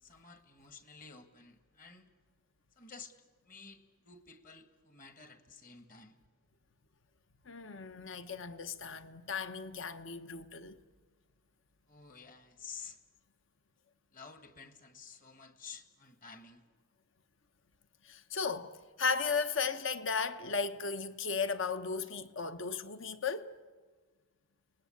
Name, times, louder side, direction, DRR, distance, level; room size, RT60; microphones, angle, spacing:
voice 1, 0.0-2.1 2.8-3.1 3.5-6.2 11.9-13.0 14.1-16.6, left 5 dB, 40° left, 1.8 m, -52 dB
voice 2, 7.5-10.8 18.0-23.5, left 5 dB, 65° left, 1.0 m, -35 dB
30.0 x 20.0 x 8.7 m
head